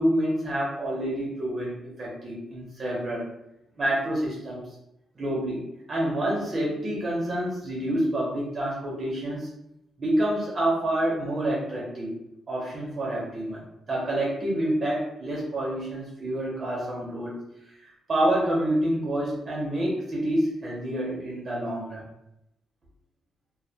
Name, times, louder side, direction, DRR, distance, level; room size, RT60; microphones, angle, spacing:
voice 1, 0.0-3.3 3.8-4.6 5.2-9.5 10.0-12.2 12.5-17.4 17.7-22.0, right 1 dB, 35° right, -4 dB, 0.5 m, -28 dB
2.2 x 2.1 x 2.7 m, 0.83 s
cardioid pair, 125°, 0 cm